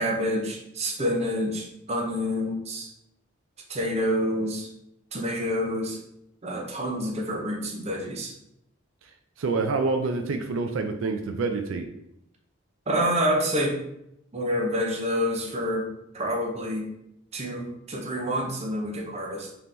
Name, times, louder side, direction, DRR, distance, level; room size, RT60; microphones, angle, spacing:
voice 1, 0.0-2.9 3.7-4.7 5.1-6.0 6.4-8.3 12.9-13.8 14.3-15.9 16.1-16.8 17.3-19.5, equal, 30° right, 1 dB, 0.7 m, -27 dB
voice 2, 9.4-11.9, right 3 dB, 80° right, 6 dB, 0.4 m, -27 dB
3.6 x 3.0 x 3.8 m, 0.80 s
head